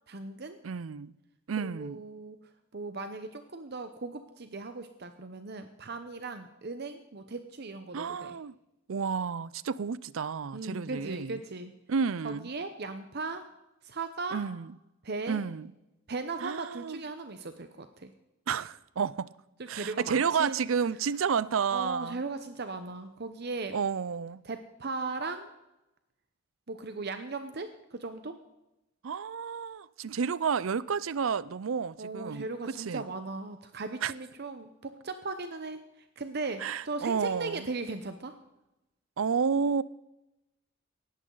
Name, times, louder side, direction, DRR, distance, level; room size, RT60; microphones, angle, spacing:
voice 1, 0.1-0.6 1.6-2.4 2.7-8.4 10.5-11.7 12.2-13.5 13.8-14.4 15.0-15.4 16.1-18.1 19.6-20.6 21.7-23.7 24.4-25.5 26.7-28.4 32.0-38.4, right 3 dB, 55° right, 0.8 m, -37 dB
voice 2, 0.6-1.1 1.5-2.0 7.9-8.6 8.9-11.4 11.9-12.5 14.3-14.7 15.3-15.7 16.4-17.0 18.5-19.3 19.7-22.2 23.7-24.4 29.0-32.5 32.7-33.0 34.0-34.1 36.6-37.7 39.2-39.8, right 6 dB, 80° right, 0.5 m, -31 dB
18.5 x 14.0 x 3.9 m
head